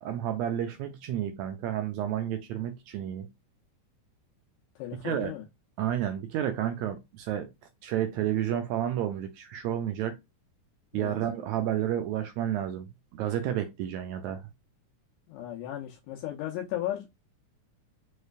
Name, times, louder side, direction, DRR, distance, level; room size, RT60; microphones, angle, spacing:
voice 1, 0.0-3.3 5.0-5.3 5.8-7.5 7.8-10.1 10.9-12.9 13.1-14.4, right 11 dB, 80° right, 1.6 m, -31 dB
voice 2, 4.8-5.4 10.9-11.1 15.3-17.2, left 13 dB, 85° left, 2.2 m, -35 dB
5.4 x 3.1 x 2.4 m
omnidirectional pair, 3.7 m